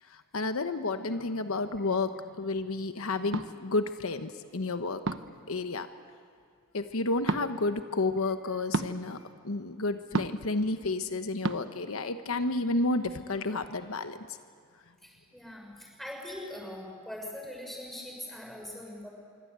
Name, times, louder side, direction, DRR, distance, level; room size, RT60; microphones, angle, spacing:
voice 1, 0.1-5.0 5.5-5.9 6.7-14.4, left 2 dB, 80° left, 9 dB, 1.1 m, -31 dB
sound 1, 3.3-3.5 5.0-5.4 7.2-7.4 8.7-8.9 10.1-10.5 11.4-11.6, right 2 dB, 60° right, 1.0 m, -30 dB
voice 2, 15.0-19.1, left 1 dB, ahead, -1 dB, 6.3 m, -42 dB
26.0 x 24.0 x 8.2 m, 2.3 s
head